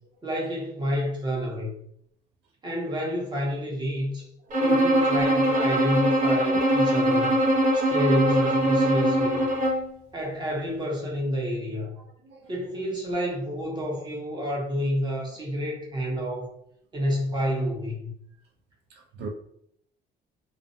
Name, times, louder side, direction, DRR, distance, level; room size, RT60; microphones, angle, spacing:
voice 1, 0.2-1.7 2.6-4.3 4.6-7.4 7.7-9.4 10.1-12.0 12.5-16.5 16.9-18.1, equal, 25° right, -2 dB, 0.9 m, -29 dB
Bowed string instrument, 4.5-9.9, right 1 dB, 55° right, 0.8 m, -22 dB
voice 2, 18.9-19.3, right 4 dB, 80° right, 2 dB, 0.4 m, -39 dB
2.5 x 2.1 x 2.6 m, 0.69 s
cardioid pair, 110°, 17 cm